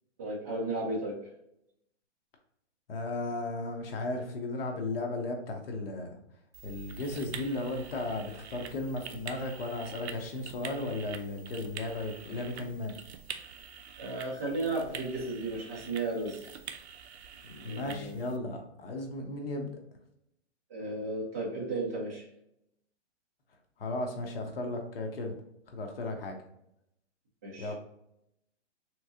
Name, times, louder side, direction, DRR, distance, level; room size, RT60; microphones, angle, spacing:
voice 1, 0.2-1.2 14.0-16.4 17.7-18.2 20.7-22.3 27.4-27.7, right 2 dB, 15° right, -3 dB, 0.4 m, -34 dB
voice 2, 2.9-6.2 6.6-13.0 17.4-19.8 23.8-25.3 25.7-26.4 27.6-27.7, left 2 dB, 55° left, 3 dB, 0.9 m, -35 dB
sound 1, 6.5-18.4, right 7 dB, 65° right, 0.6 m, -46 dB
3.5 x 3.1 x 2.6 m, 0.79 s
hypercardioid pair, 165°, 35 cm